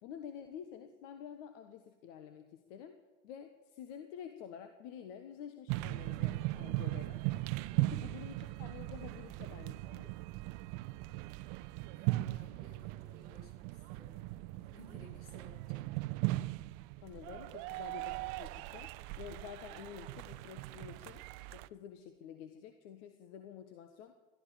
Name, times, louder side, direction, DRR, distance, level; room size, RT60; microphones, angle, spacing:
voice 1, 0.0-3.0 3.2-7.2 7.8-10.1 17.0-21.2 21.5-24.1, left 8 dB, 60° left, 8 dB, 1.4 m, -49 dB
sound 1, 5.7-21.7, right 19 dB, 45° right, 0.6 m, -39 dB
voice 2, 11.9-15.9, left 2 dB, 75° left, 3 dB, 4.4 m, -59 dB
21.0 x 13.5 x 5.0 m, 1.2 s
hypercardioid pair, 80°, 42 cm